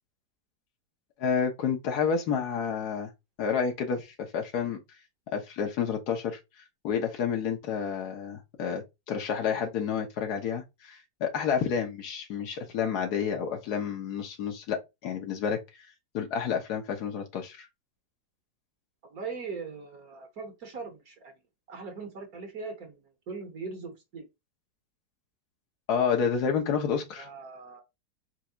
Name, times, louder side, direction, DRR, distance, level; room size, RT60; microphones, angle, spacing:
voice 1, 1.2-3.1 3.4-4.8 5.3-6.4 6.8-15.6 16.1-17.7 25.9-27.3, left 6 dB, 65° left, 1.5 m, -29 dB
voice 2, 19.1-21.3 21.7-23.0 23.3-24.2 27.2-27.8, right 4 dB, 60° right, 1.5 m, -40 dB
4.7 x 4.1 x 2.4 m
omnidirectional pair, 1.9 m